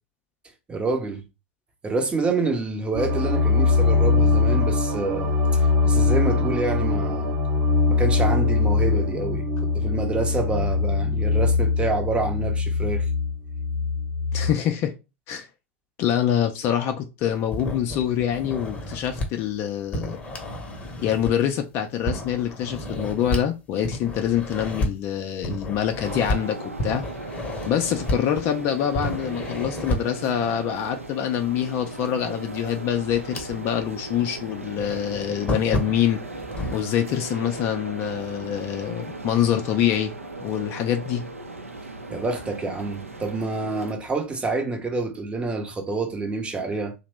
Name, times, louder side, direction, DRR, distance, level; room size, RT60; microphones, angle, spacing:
voice 1, 0.7-1.2 1.8-7.4 7.9-13.1 42.1-46.9, right 3 dB, 15° right, 0.6 m, -27 dB
sound 1, 2.9-14.5, left 4 dB, 55° right, 0.9 m, -22 dB
voice 2, 14.3-14.9 15.3-15.5 16.0-20.2 21.0-27.1 27.7-36.2 36.7-40.1 40.4-41.2, left 10 dB, 35° left, 0.4 m, -25 dB
sound 2, 17.5-19.3 19.9-21.5 22.1-23.5 23.8-24.9 25.4-26.4 26.8-28.6 28.9-30.2 32.0-32.1 32.7-33.9 34.2-34.3 34.8-36.8, left 1 dB, 20° left, 0.8 m, -31 dB
sound 3, 26.0-43.9, right 2 dB, 90° right, 0.5 m, -37 dB
2.8 x 2.0 x 3.3 m
figure-of-eight pair, 95°, 7 cm